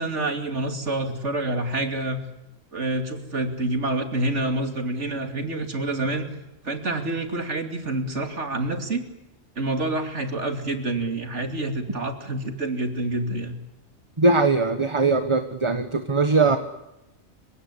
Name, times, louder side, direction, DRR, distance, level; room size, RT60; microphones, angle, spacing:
voice 1, 0.0-2.2 2.7-6.2 6.6-9.0 9.6-13.6, right 2 dB, 60° right, 7 dB, 3.1 m, -27 dB
voice 2, 14.2-16.6, right 3 dB, 25° right, 9 dB, 1.3 m, -20 dB
30.0 x 17.0 x 9.9 m, 0.94 s
omnidirectional pair, 1.4 m